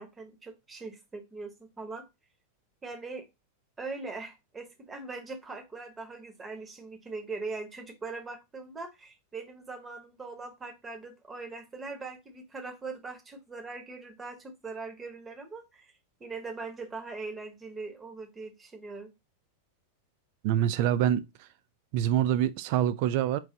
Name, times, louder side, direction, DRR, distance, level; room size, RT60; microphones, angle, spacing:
voice 1, 0.0-2.0 2.8-3.2 3.8-15.9 16.2-19.1, right 3 dB, 15° right, 0.9 m, -41 dB
voice 2, 20.4-21.5 21.9-23.4, right 11 dB, 45° right, 0.3 m, -26 dB
4.5 x 2.3 x 3.8 m
figure-of-eight pair, 90°, 0 cm